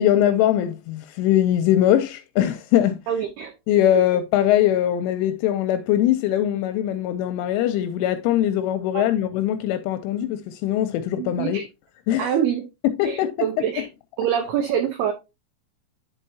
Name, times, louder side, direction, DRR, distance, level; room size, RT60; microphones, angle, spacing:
voice 1, 0.0-3.0 3.7-11.6 12.1-12.3 12.8-13.5 13.8-13.9, left 12 dB, 85° left, 2.9 m, -21 dB
voice 2, 3.1-3.5 3.9-4.0 8.9-9.0 11.2-11.7 12.2-12.6 13.0-13.9 14.2-15.1, right 9 dB, 90° right, 2.2 m, -25 dB
10.5 x 5.5 x 2.7 m
omnidirectional pair, 5.8 m